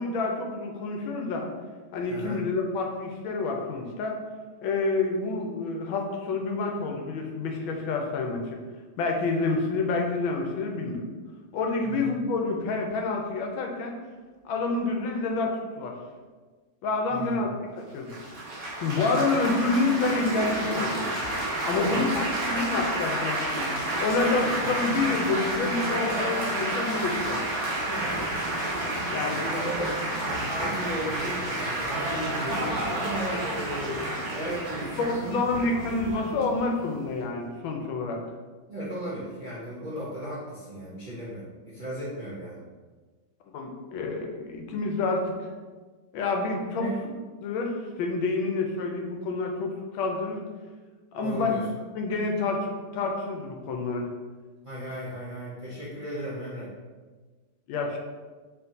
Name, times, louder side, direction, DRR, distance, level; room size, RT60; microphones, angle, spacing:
voice 1, 0.0-1.5 1.9-4.2 4.6-8.6 9.0-11.0 11.5-14.0 14.4-16.0 16.8-18.2 18.8-21.0 21.7-23.7 24.0-27.4 29.1-29.4 35.0-38.2 43.5-45.5 46.1-46.9 47.4-50.4 51.1-51.5 51.9-52.7 52.9-54.1 57.7-58.0, left 3 dB, 80° left, 2 dB, 1.4 m, -28 dB
voice 2, 2.1-2.4 11.8-12.1 17.1-17.4 21.7-22.0 27.9-28.2 29.2-29.9 30.1-35.4 38.7-42.6 46.8-47.0 51.2-51.7 54.6-56.7, equal, 70° right, -8 dB, 0.4 m, -35 dB
Laughter / Applause / Chatter, 18.1-37.2, right 1 dB, 45° right, 1.1 m, -30 dB
4.5 x 3.8 x 2.7 m, 1.4 s
omnidirectional pair, 2.2 m